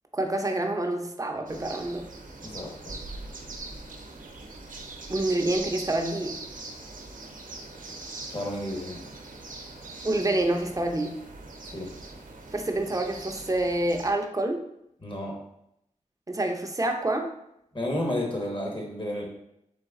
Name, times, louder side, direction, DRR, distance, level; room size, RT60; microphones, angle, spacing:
voice 1, 0.1-2.0 5.1-6.4 10.0-11.2 12.5-14.6 16.3-17.3, right 1 dB, 25° right, 3 dB, 0.6 m, -27 dB
sound 1, 1.5-14.1, right 2 dB, 90° right, 0.6 m, -41 dB
voice 2, 2.4-2.9 8.3-9.0 11.7-11.9 15.0-15.4 17.7-19.2, left 1 dB, 40° left, -1 dB, 1.3 m, -31 dB
4.0 x 3.2 x 3.6 m, 0.79 s
cardioid pair, 55°, 13 cm